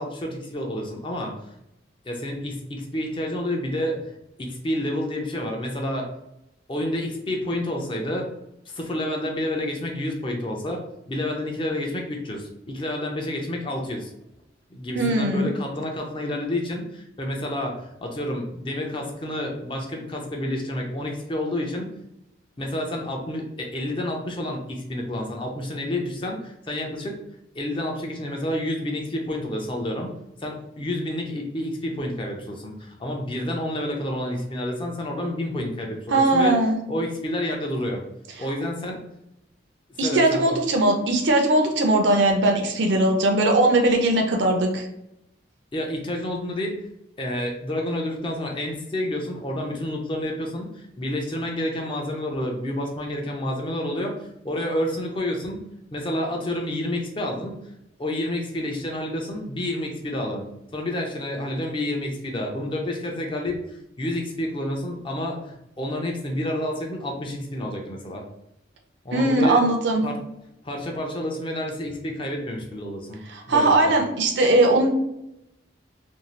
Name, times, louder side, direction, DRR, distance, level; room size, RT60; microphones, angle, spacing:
voice 1, 0.0-1.3 2.0-6.1 6.7-8.3 8.7-14.1 14.7-21.9 22.6-27.2 27.5-30.1 30.4-36.6 36.9-38.0 38.4-39.0 40.0-40.6 45.7-46.8 47.2-54.1 54.4-55.6 55.9-57.5 58.0-60.5 60.7-68.2 69.0-69.6 70.0-70.2 70.6-73.2 73.5-74.0, left 1 dB, 25° left, 1 dB, 0.4 m, -29 dB
voice 2, 14.9-15.5 36.1-36.8 40.0-44.9 69.1-70.0 73.3-74.9, right 2 dB, 70° right, 3 dB, 0.6 m, -20 dB
2.6 x 2.3 x 3.0 m, 0.84 s
head